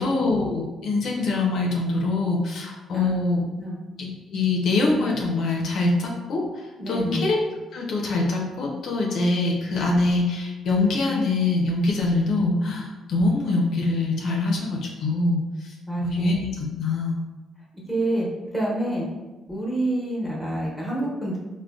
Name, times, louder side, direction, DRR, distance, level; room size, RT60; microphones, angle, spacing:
voice 1, 0.0-3.4 4.0-7.4 7.7-15.7 16.0-17.2, left 3 dB, 70° left, -1 dB, 0.5 m, -24 dB
voice 2, 6.8-7.2 15.9-16.3 17.9-18.3 18.5-19.1 19.5-21.4, right 1 dB, 5° left, -4 dB, 1.0 m, -27 dB
3.6 x 2.1 x 2.3 m, 1.1 s
cardioid pair, 90°, 0 cm